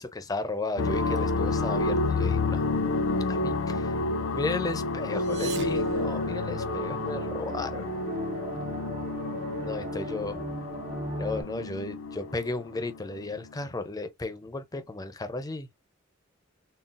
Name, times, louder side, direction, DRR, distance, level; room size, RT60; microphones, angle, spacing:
voice 1, 0.0-2.6 3.1-3.9 4.3-7.9 9.6-10.4 11.1-15.7, left 2 dB, 20° left, 0.5 m, -34 dB
sound 1, 0.8-13.5, left 3 dB, 80° left, 0.5 m, -30 dB
sound 2, 5.1-7.0, right 8 dB, 60° right, 0.5 m, -43 dB
sound 3, 5.7-11.4, equal, 45° right, 1.1 m, -37 dB
3.8 x 2.0 x 2.4 m
head